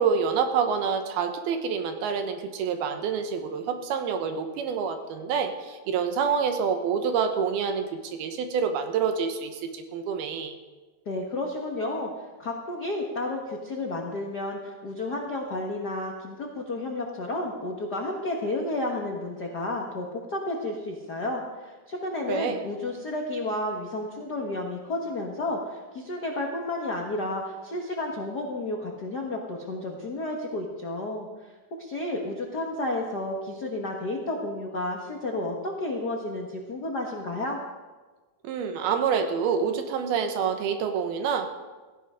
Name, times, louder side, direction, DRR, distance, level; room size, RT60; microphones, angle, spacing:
voice 1, 0.0-10.5 22.3-22.6 38.4-41.5, right 6 dB, 85° right, 6 dB, 3.1 m, -27 dB
voice 2, 11.0-12.1 12.4-31.3 31.8-37.6, left 2 dB, 90° left, 0 dB, 0.8 m, -31 dB
16.5 x 16.5 x 3.7 m, 1.3 s
omnidirectional pair, 4.3 m